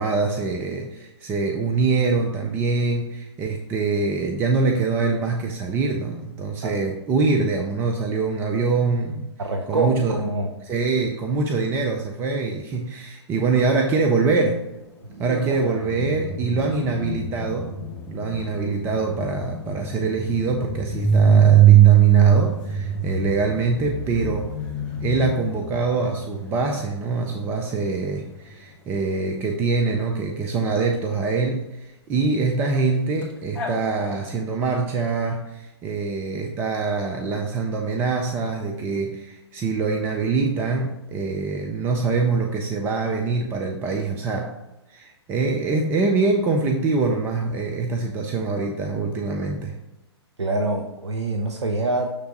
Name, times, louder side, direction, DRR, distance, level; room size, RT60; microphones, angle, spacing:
voice 1, 0.0-9.3 9.7-10.2 10.6-14.6 15.2-17.7 18.1-24.5 25.0-44.6 44.9-49.8, right 4 dB, 15° right, 2 dB, 0.4 m, -24 dB
voice 2, 9.4-10.5 15.0-15.8 50.4-52.1, right 2 dB, 80° right, 3 dB, 0.6 m, -26 dB
sound 1, 15.5-27.0 33.2-33.3 33.5-33.7, right 8 dB, 10° left, 1.5 m, -21 dB
6.6 x 3.4 x 5.2 m, 0.95 s
figure-of-eight pair, 125°, 14 cm